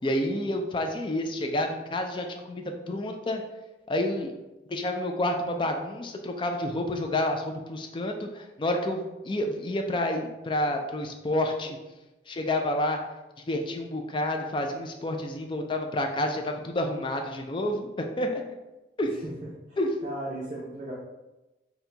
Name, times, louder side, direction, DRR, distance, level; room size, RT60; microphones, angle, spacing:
voice 1, 0.0-3.4 3.9-4.3 4.7-11.8 12.3-13.0 13.5-18.4 19.0-19.1 19.8-19.9, left 1 dB, 30° left, 4 dB, 0.4 m, -29 dB
voice 2, 19.7-20.9, right 1 dB, 45° right, -6 dB, 0.8 m, -37 dB
4.4 x 2.3 x 3.8 m, 1.0 s
head